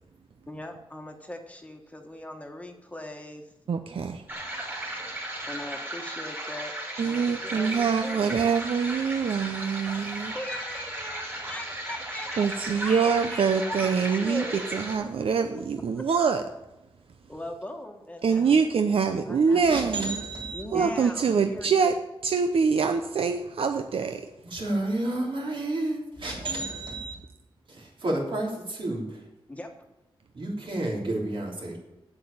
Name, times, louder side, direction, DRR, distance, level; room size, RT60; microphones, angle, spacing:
voice 1, 0.5-3.5 5.5-6.7 7.0-8.3 10.3-13.9 14.2-14.7 15.9-16.0 17.3-18.6 19.2-19.8 20.5-21.9 29.5-29.7, left 1 dB, 15° left, 4 dB, 1.3 m, -39 dB
voice 2, 3.7-4.2 7.0-10.3 12.4-16.4 18.2-20.2 20.7-24.2, right 5 dB, 85° right, 7 dB, 0.7 m, -25 dB
sound 1, 4.3-15.0, right 1 dB, 25° right, 3.0 m, -36 dB
voice 3, 19.7-20.6 24.4-27.1 27.7-29.2 30.3-31.8, right 2 dB, 65° right, -1 dB, 3.4 m, -31 dB
8.2 x 7.8 x 8.6 m, 0.93 s
wide cardioid pair, 130°, 9 cm